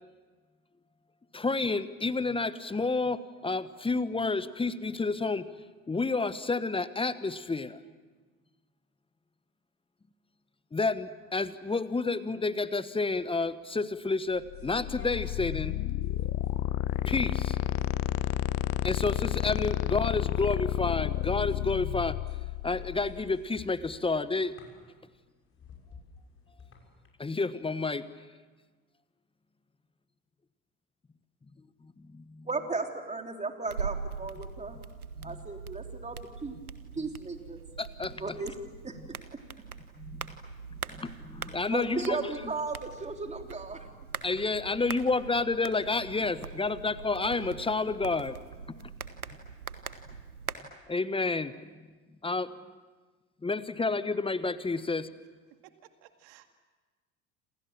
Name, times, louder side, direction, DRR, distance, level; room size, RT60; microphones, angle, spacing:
voice 1, 1.3-5.5 5.9-7.8 10.7-15.8 17.1-17.6 18.8-22.2 22.6-24.6 27.2-28.1 31.8-32.5 35.2-35.4 37.8-38.3 40.0-40.4 40.9-42.2 44.2-48.4 48.7-48.9 50.9-51.6 52.2-52.5 53.4-55.1, left 3 dB, 10° left, 14 dB, 1.2 m, -30 dB
sound 1, 13.3-27.1, left 5 dB, 30° left, 6.6 m, -52 dB
sound 2, 14.5-23.4, left 14 dB, 50° left, 1.1 m, -31 dB
voice 2, 32.5-34.8 35.2-36.6 36.9-37.6 38.2-38.6 38.8-39.0 41.7-43.9, right 3 dB, 15° right, 4 dB, 3.5 m, -35 dB
sound 3, 33.7-50.6, right 5 dB, 90° right, 1.4 m, -42 dB
voice 3, 55.6-56.5, right 12 dB, 55° right, 7 dB, 2.2 m, -56 dB
28.0 x 27.5 x 7.5 m, 1.3 s
figure-of-eight pair, 70°, 42 cm